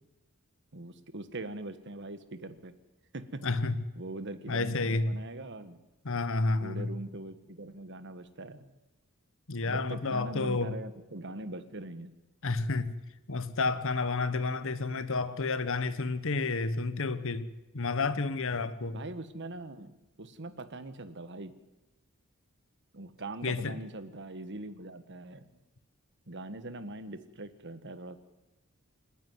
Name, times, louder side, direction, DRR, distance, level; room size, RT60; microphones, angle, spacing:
voice 1, 0.7-2.7 3.1-3.4 4.0-5.8 6.6-8.7 9.6-12.1 18.9-21.5 22.9-25.4 26.3-28.2, right 2 dB, 55° right, 1.5 m, -42 dB
voice 2, 3.4-3.8 4.5-5.2 6.0-6.9 9.5-10.7 12.4-13.0 13.3-17.5 17.7-19.0 23.4-23.7, left 3 dB, 65° left, 1.3 m, -30 dB
27.5 x 10.5 x 9.6 m
head